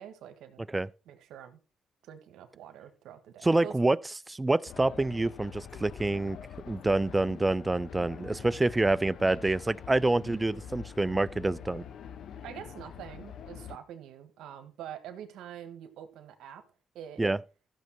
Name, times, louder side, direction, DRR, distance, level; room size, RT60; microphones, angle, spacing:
voice 1, 0.0-0.6 1.1-1.6 2.0-3.7 12.4-16.6 16.9-17.2, right 10 dB, 85° right, 1.5 m, -45 dB
voice 2, 3.4-4.0 4.3-6.4 6.7-11.8 17.2-17.4, right 2 dB, 15° right, 0.5 m, -27 dB
sound 1, 4.7-13.8, left 8 dB, 65° left, 1.0 m, -45 dB
13.5 x 6.6 x 4.5 m
cardioid pair, 90°, 0 cm